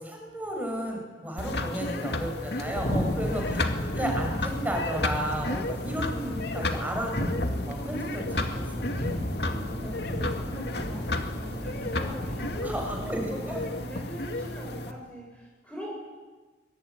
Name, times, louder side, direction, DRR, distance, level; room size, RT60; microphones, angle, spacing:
voice 1, 0.0-8.9 12.6-13.8, equal, 10° right, 1 dB, 7.0 m, -34 dB
sound 1, 1.4-14.9, left 2 dB, 65° left, 2.3 m, -33 dB
voice 2, 1.6-4.0 6.1-6.9 8.3-8.8 9.4-15.9, left 1 dB, 10° left, -3 dB, 5.3 m, -43 dB
sound 2, 2.6-13.0, equal, 50° left, 6.8 m, -35 dB
sound 3, 7.2-13.6, equal, 40° right, 3.6 m, -41 dB
23.5 x 22.0 x 10.0 m, 1.3 s
head